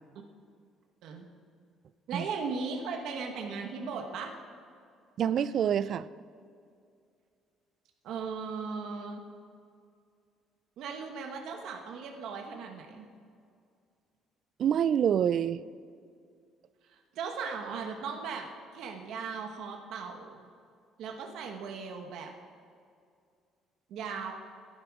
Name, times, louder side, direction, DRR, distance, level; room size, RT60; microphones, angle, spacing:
voice 1, 2.1-4.3 8.0-9.2 10.8-13.1 16.9-18.5 18.7-20.4 21.0-22.3 23.9-24.3, right 5 dB, 65° right, 3 dB, 1.2 m, -37 dB
voice 2, 5.2-6.1 14.6-15.6, right 9 dB, 45° right, 17 dB, 0.3 m, -26 dB
12.0 x 10.5 x 4.8 m, 2.3 s
cardioid pair, 165°, 0 cm